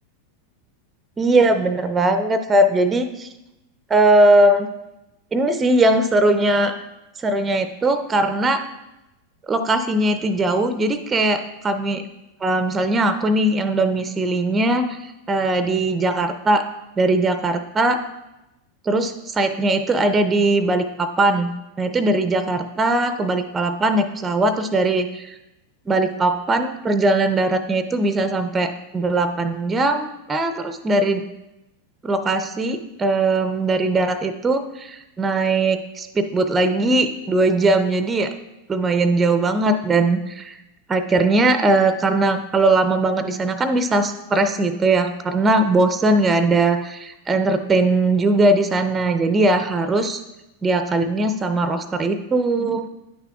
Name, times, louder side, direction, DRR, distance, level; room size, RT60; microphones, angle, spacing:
voice 1, 1.2-3.3 3.9-4.7 5.3-6.7 7.2-8.6 9.5-12.0 12.4-16.7 17.0-18.0 18.8-21.5 21.8-25.3 25.9-31.3 32.0-38.3 38.7-40.5 40.9-50.2 50.6-52.9, right 2 dB, 15° right, 10 dB, 0.4 m, -20 dB
9.6 x 5.7 x 2.3 m, 0.95 s
figure-of-eight pair, 90°, 0 cm